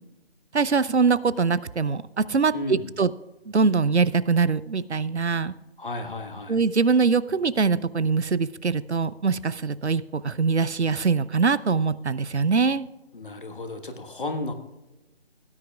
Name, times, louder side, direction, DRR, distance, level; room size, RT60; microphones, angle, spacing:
voice 1, 0.5-3.1 3.5-5.5 6.5-12.9, right 5 dB, 85° right, 18 dB, 0.7 m, -23 dB
voice 2, 2.5-2.9 5.8-6.6 13.1-14.5, left 2 dB, 50° left, 6 dB, 1.5 m, -33 dB
17.5 x 9.6 x 2.4 m, 1.0 s
figure-of-eight pair, 160°, 33 cm